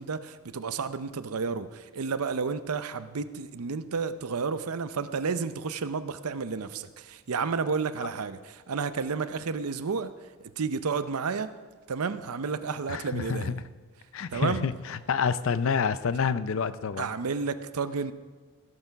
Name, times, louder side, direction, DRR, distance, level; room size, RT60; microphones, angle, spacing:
voice 1, 0.0-10.1 10.4-11.5 11.9-13.6 14.3-14.7 17.0-18.1, right 5 dB, 85° right, 13 dB, 0.6 m, -31 dB
voice 2, 12.9-13.6 14.1-17.1, left 6 dB, 65° left, 14 dB, 0.5 m, -28 dB
16.0 x 6.9 x 5.8 m, 1.4 s
head